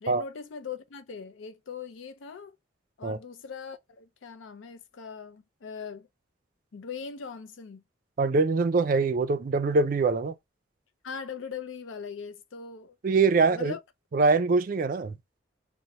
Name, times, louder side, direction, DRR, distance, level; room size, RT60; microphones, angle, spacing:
voice 1, 0.0-2.6 3.0-6.1 6.7-7.8 11.0-13.0 13.3-13.8, left 6 dB, 85° left, 0.5 m, -40 dB
voice 2, 8.2-10.3 13.0-13.7 14.1-15.2, right 4 dB, 45° right, 0.3 m, -23 dB
2.9 x 2.1 x 4.0 m
head